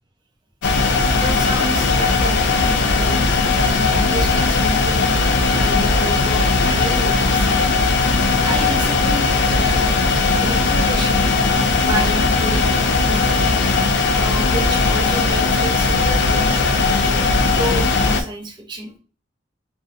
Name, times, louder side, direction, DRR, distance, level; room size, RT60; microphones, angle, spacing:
sound 1, 0.6-18.2, left 3 dB, 60° left, 0.3 m, -18 dB
voice 1, 1.2-3.3 3.6-5.2 5.4-10.0 10.4-11.3 11.8-13.4 14.1-19.0, right 1 dB, 25° right, 2 dB, 0.5 m, -31 dB
2.6 x 2.1 x 2.4 m, 0.37 s
head